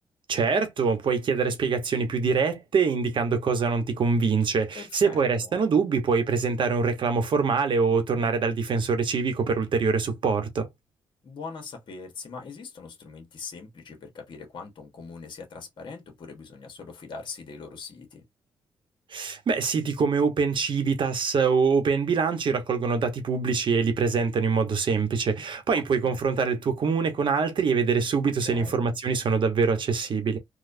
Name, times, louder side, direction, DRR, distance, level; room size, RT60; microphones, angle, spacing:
voice 1, 0.3-10.7 19.1-30.4, right 5 dB, 60° right, 1.0 m, -24 dB
voice 2, 4.7-5.5 11.2-18.2 25.7-26.2 28.4-28.9, left 4 dB, 55° left, 1.3 m, -42 dB
4.1 x 2.3 x 2.6 m
cardioid pair, 80°, 10 cm